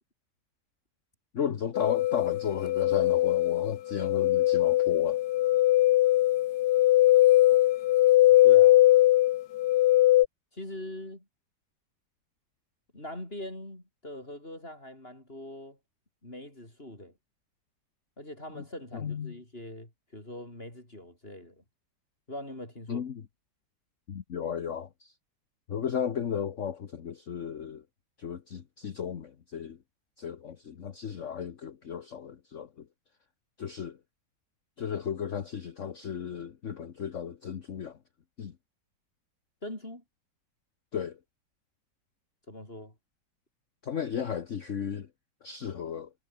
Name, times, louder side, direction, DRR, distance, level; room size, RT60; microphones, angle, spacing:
voice 1, 1.3-5.2 18.5-18.7 18.9-19.4 22.9-23.2 24.1-25.1 25.7-27.8 28.2-29.8 30.2-32.9 33.6-34.0 34.8-38.0 38.4-38.6 40.9-41.2 43.8-45.1 45.4-46.1, left 8 dB, 50° left, 1.3 m, -34 dB
sound 1, 1.8-10.3, left 15 dB, 75° left, 1.2 m, -21 dB
voice 2, 8.4-8.8 10.5-11.2 12.9-15.8 16.2-17.1 18.2-21.6 22.3-23.0 39.6-40.0 42.5-42.9, left 1 dB, 30° left, 6.4 m, -42 dB
omnidirectional pair, 1.9 m